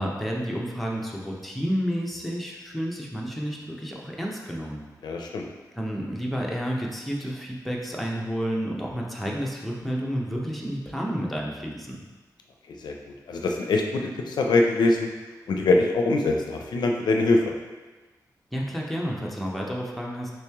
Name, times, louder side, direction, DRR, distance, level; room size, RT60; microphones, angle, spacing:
voice 1, 0.0-4.8 5.8-12.0 18.5-20.3, equal, ahead, -2 dB, 0.6 m, -30 dB
voice 2, 5.0-5.4 12.8-12.9 13.3-15.1 15.5-17.5, left 2 dB, 90° left, 2 dB, 0.4 m, -23 dB
3.1 x 3.0 x 3.4 m, 1.2 s
wide cardioid pair, 85°, 7 cm